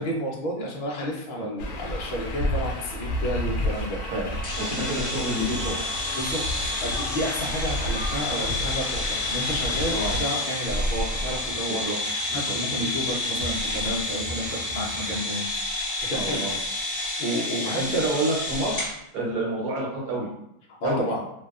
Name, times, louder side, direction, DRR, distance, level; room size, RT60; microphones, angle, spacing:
voice 1, 0.0-4.0 4.8-5.0 6.2-15.5 16.1-16.4 17.2-18.0 20.8-21.2, equal, 60° left, -3 dB, 0.5 m, -31 dB
sound 1, 1.6-10.2, left 1 dB, 80° left, 1.0 m, -31 dB
sound 2, 3.1-15.2, right 1 dB, 50° right, 0.7 m, -42 dB
sound 3, 4.4-18.9, left 2 dB, 40° left, 1.0 m, -30 dB
voice 2, 4.6-5.8 9.9-10.1 11.7-12.0 12.3-12.6 16.1-16.6 17.6-20.3 20.8-21.0, right 1 dB, 75° right, -3 dB, 1.3 m, -29 dB
2.7 x 2.2 x 2.4 m, 0.79 s
omnidirectional pair, 1.6 m